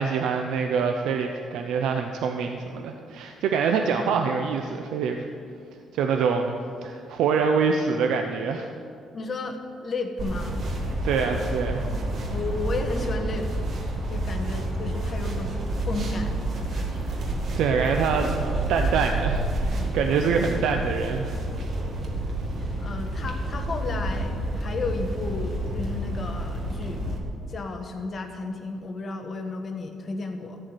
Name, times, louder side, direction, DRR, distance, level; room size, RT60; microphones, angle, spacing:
voice 1, 0.0-5.3 5.9-8.7 11.0-11.8 17.2-18.3 18.7-21.4, right 5 dB, 80° right, 4 dB, 0.7 m, -25 dB
voice 2, 9.1-10.6 12.3-13.5 14.1-17.2 19.7-20.1 22.8-27.1 27.5-30.6, left 3 dB, 40° left, 4 dB, 1.5 m, -33 dB
sound 1, 10.2-27.2, right 1 dB, 55° right, 2.1 m, -29 dB
14.5 x 4.9 x 9.2 m, 2.4 s
cardioid pair, 100°, 0 cm